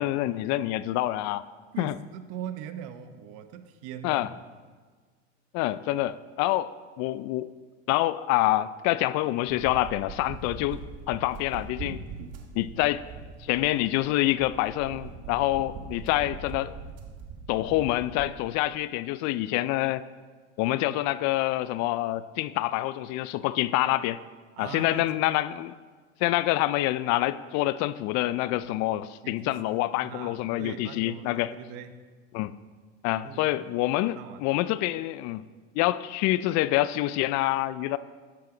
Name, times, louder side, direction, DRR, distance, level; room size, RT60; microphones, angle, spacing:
voice 1, 0.0-1.4 1.8-1.9 4.0-4.3 5.5-6.7 7.0-7.5 7.9-10.8 11.1-12.0 12.5-13.0 13.4-16.7 17.5-20.0 20.6-24.2 24.6-25.7 26.2-31.5 32.3-32.6 33.0-35.4 35.8-38.0, left 16 dB, 50° left, 16 dB, 0.5 m, -26 dB
voice 2, 1.7-4.4 24.6-25.0 29.2-29.6 30.0-32.0 33.1-33.5 34.0-34.4, right 9 dB, 60° right, 10 dB, 1.0 m, -41 dB
sound 1, 9.5-18.3, right 5 dB, 45° right, 1.4 m, -41 dB
13.0 x 9.4 x 3.9 m, 1.5 s
supercardioid pair, 105°, 35 cm